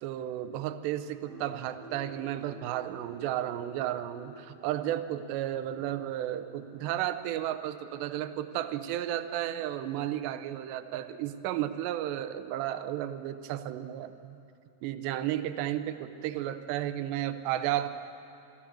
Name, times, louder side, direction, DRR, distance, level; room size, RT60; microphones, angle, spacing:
voice 1, 0.0-14.4 14.8-17.9, right 12 dB, 90° right, 11 dB, 3.0 m, -33 dB
sound 1, 1.2-11.2 11.5-11.8 12.3-12.4, right 1 dB, 30° left, 6.5 m, -54 dB
26.0 x 14.5 x 7.5 m, 2.6 s
omnidirectional pair, 4.8 m